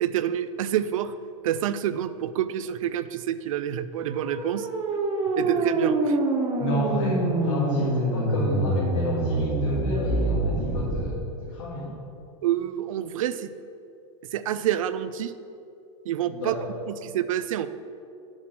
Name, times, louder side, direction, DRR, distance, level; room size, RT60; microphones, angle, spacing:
voice 1, 0.0-1.1 1.4-4.7 5.4-6.2 12.4-13.5 14.3-15.3 16.1-16.5 16.9-17.7, right 11 dB, 75° right, 13 dB, 0.5 m, -27 dB
sound 1, 4.0-11.1, right 2 dB, 30° right, 1.3 m, -26 dB
voice 2, 6.6-12.0 16.3-16.7, equal, 65° left, -6 dB, 1.8 m, -30 dB
7.7 x 5.9 x 5.9 m, 2.6 s
hypercardioid pair, 125°, 17 cm